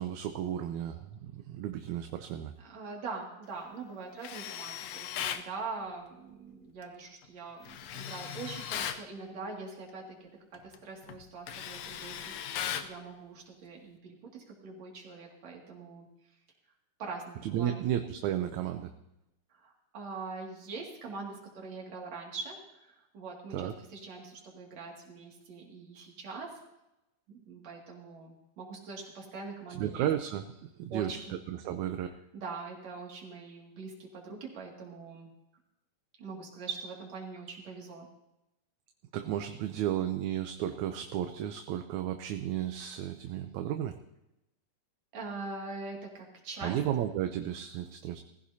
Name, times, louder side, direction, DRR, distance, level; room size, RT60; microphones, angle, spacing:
voice 1, 0.0-2.5 17.4-18.9 23.5-23.7 29.8-31.2 31.5-32.1 39.1-44.0 46.6-48.2, right 11 dB, 80° right, 6 dB, 2.0 m, -33 dB
voice 2, 2.6-16.1 17.0-17.8 19.5-26.5 27.3-30.1 30.9-31.3 32.3-35.3 36.2-38.1 45.1-46.8, right 4 dB, 65° right, -1 dB, 3.5 m, -43 dB
Tools, 4.2-5.5 7.7-9.0 10.5-10.8 11.1-13.0, left 9 dB, 75° left, 1.7 m, -37 dB
19.5 x 15.5 x 2.8 m, 0.91 s
omnidirectional pair, 3.4 m